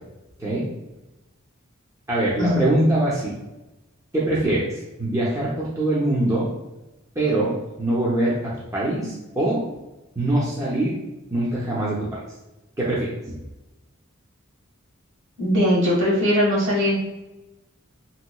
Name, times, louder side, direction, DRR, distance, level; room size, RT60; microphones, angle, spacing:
voice 1, 2.1-3.3 4.1-6.5 7.2-9.7 10.2-11.0 11.3-12.2 12.8-13.4, right 1 dB, 15° right, -7 dB, 0.6 m, -23 dB
voice 2, 15.4-17.0, equal, 60° right, -5 dB, 1.4 m, -20 dB
3.5 x 2.9 x 2.2 m, 0.99 s
head